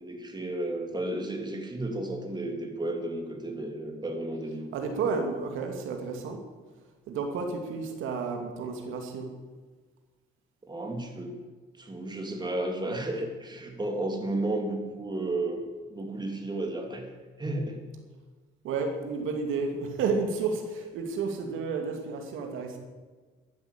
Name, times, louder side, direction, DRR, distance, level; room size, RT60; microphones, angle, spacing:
voice 1, 0.0-4.7 10.7-11.4 11.8-15.6 15.9-17.1 17.4-17.8, right 1 dB, 20° right, 3 dB, 3.3 m, -33 dB
voice 2, 4.4-6.4 7.1-9.5 18.6-22.8, right 4 dB, 90° right, 3 dB, 2.5 m, -31 dB
13.0 x 11.5 x 8.6 m, 1.4 s
cardioid pair, 90°, 20 cm